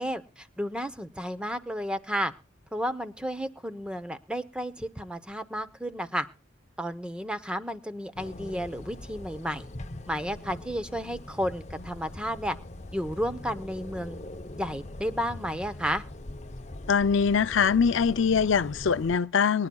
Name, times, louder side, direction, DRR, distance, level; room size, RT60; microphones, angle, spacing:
voice 1, 0.0-2.3 2.7-6.3 6.8-9.7 10.1-12.6 12.9-14.2 14.6-16.0, equal, 5° right, 0.8 m, -32 dB
sound 1, 8.2-19.2, left 1 dB, 35° left, 0.7 m, -42 dB
voice 2, 16.9-19.7, left 6 dB, 70° left, 0.5 m, -23 dB
23.5 x 10.5 x 2.3 m
head